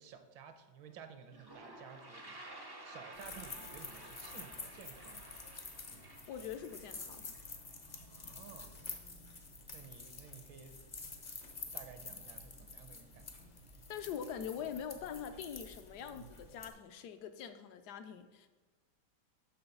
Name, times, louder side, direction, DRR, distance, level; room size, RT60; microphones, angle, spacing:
voice 1, 0.0-5.4 8.0-8.8 9.7-10.8 11.7-13.3, right 7 dB, 75° right, 8 dB, 1.4 m, -54 dB
Toilet flush, 0.9-1.0 1.2-8.0, right 1 dB, 40° right, 0.3 m, -53 dB
sound 1, 3.1-16.7, left 3 dB, 55° left, 0.4 m, -49 dB
voice 2, 6.3-7.2 13.9-18.5, left 8 dB, 70° left, 9 dB, 1.0 m, -43 dB
7.0 x 6.2 x 5.3 m, 1.4 s
omnidirectional pair, 2.2 m